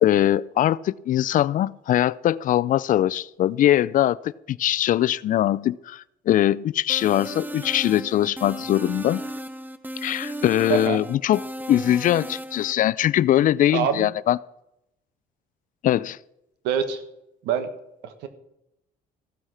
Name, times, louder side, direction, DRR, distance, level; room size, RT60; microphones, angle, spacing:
voice 1, 0.0-9.2 10.0-11.4 11.7-14.4 15.8-16.2, left 12 dB, 50° left, 0.4 m, -21 dB
sound 1, 6.9-12.7, right 1 dB, 10° right, 0.8 m, -35 dB
voice 2, 13.7-14.1 16.6-17.0 17.4-17.7 18.0-18.3, right 8 dB, 90° right, 1.4 m, -25 dB
15.0 x 8.0 x 5.8 m
cardioid pair, 110°, 17 cm